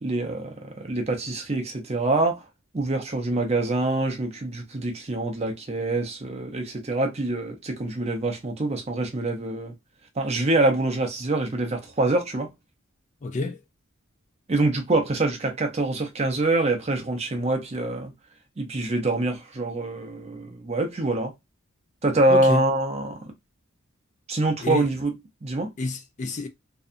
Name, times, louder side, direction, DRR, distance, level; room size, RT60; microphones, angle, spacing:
voice 1, 0.0-2.4 2.7-9.7 10.2-12.5 14.5-18.1 18.6-21.3 22.0-23.3 24.3-25.1 25.4-25.7, right 2 dB, 30° right, 0.6 m, -25 dB
voice 2, 13.2-13.6 22.3-22.7 24.6-24.9 25.8-26.5, left 3 dB, 35° left, 0.4 m, -29 dB
2.7 x 2.2 x 2.4 m
head